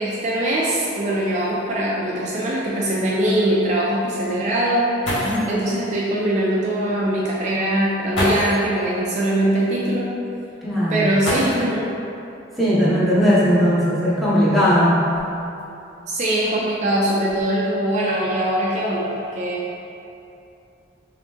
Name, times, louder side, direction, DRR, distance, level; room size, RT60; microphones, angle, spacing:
voice 1, 0.0-10.1 10.9-11.9 16.1-19.6, right 1 dB, 35° right, -5 dB, 0.3 m, -22 dB
sound 1, 5.0-5.6 6.9-7.0 8.1-8.7 11.2-11.9 13.3-13.4 14.1-15.6 16.3-16.7 17.0-17.4, left 1 dB, 70° left, 1.2 m, -27 dB
voice 2, 5.2-5.5 10.6-11.1 12.6-15.0, equal, ahead, -10 dB, 0.7 m, -18 dB
3.1 x 2.9 x 3.4 m, 2.8 s
head